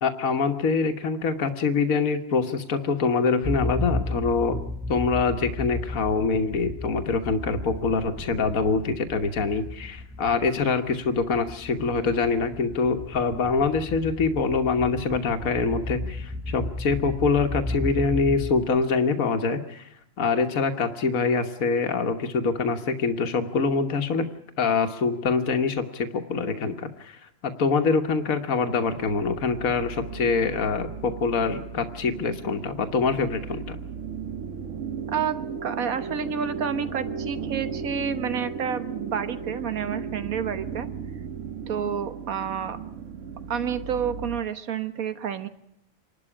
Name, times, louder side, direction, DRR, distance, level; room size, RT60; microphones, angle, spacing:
voice 1, 0.0-4.6 4.9-19.9 20.2-24.3 24.6-33.8, left 4 dB, 80° left, 6 dB, 1.7 m, -25 dB
sound 1, 3.4-19.1, left 1 dB, 10° right, 0.9 m, -34 dB
sound 2, 28.8-44.4, right 6 dB, 65° right, 1.4 m, -36 dB
voice 2, 35.1-40.9 41.7-42.8 43.5-45.5, right 7 dB, 85° right, 11 dB, 1.7 m, -29 dB
27.0 x 12.5 x 9.9 m, 0.79 s
omnidirectional pair, 1.4 m